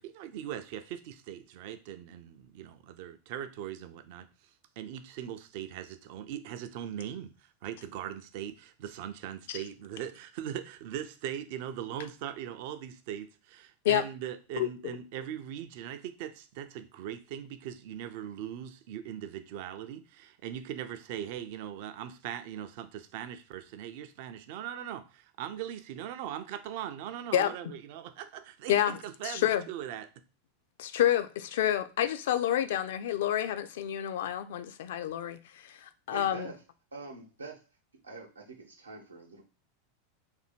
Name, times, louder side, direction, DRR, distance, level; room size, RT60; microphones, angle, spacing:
voice 1, 0.0-4.3 4.8-7.3 7.6-30.1, right 10 dB, 50° right, 0.4 m, -40 dB
voice 2, 14.6-15.0 27.3-27.5 28.7-29.0 29.2-29.6 30.8-36.5, left 11 dB, 60° left, 0.3 m, -29 dB
voice 3, 36.1-36.6 36.9-37.7 38.0-39.4, right 3 dB, 80° right, 0.8 m, -45 dB
2.7 x 2.6 x 4.2 m
figure-of-eight pair, 85°, 0 cm